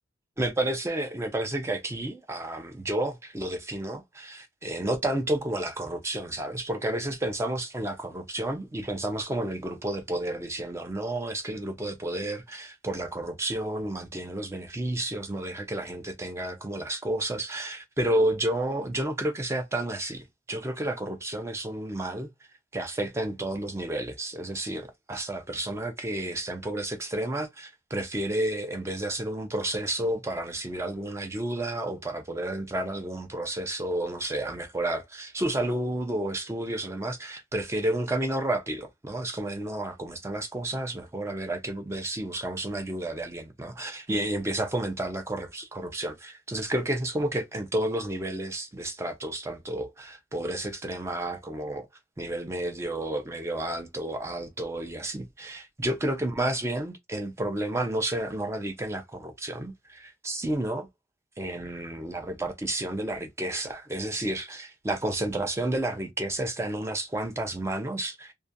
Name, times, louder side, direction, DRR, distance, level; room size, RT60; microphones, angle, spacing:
voice 1, 0.4-22.3 22.7-51.9 52.2-60.9 61.4-68.3, right 1 dB, 15° right, 0.3 m, -31 dB
2.3 x 2.2 x 2.6 m
head